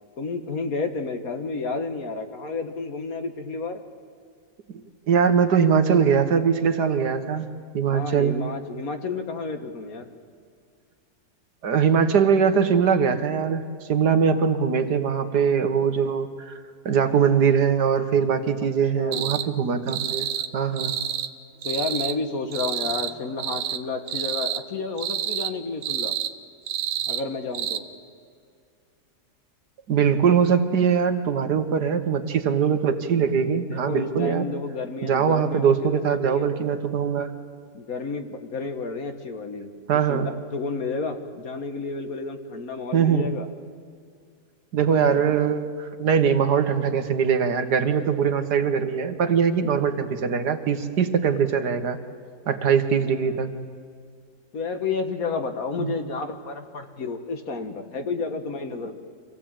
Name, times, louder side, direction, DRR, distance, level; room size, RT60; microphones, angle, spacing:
voice 1, 0.2-3.8 7.9-10.1 18.9-19.4 21.6-26.1 27.1-27.8 33.5-36.5 37.7-39.7 40.1-40.2 40.5-43.5 53.1-53.5 54.5-59.0, left 4 dB, 55° left, 6 dB, 1.7 m, -31 dB
voice 2, 5.1-7.5 7.7-8.4 11.6-20.9 29.9-34.5 35.0-37.3 39.9-40.3 42.9-43.3 44.7-52.0 52.5-53.5 55.8-55.9, right 7 dB, 65° right, 8 dB, 1.7 m, -22 dB
sound 1, 19.1-19.5 19.9-20.5 20.8-21.3 21.6-22.2 22.5-23.1 23.4-23.8 24.1-24.6 25.0-25.5 25.8-26.3 26.7-27.2 27.5-27.8, right 10 dB, 85° right, 1.5 m, -28 dB
25.5 x 16.0 x 8.8 m, 2.2 s
omnidirectional pair, 1.9 m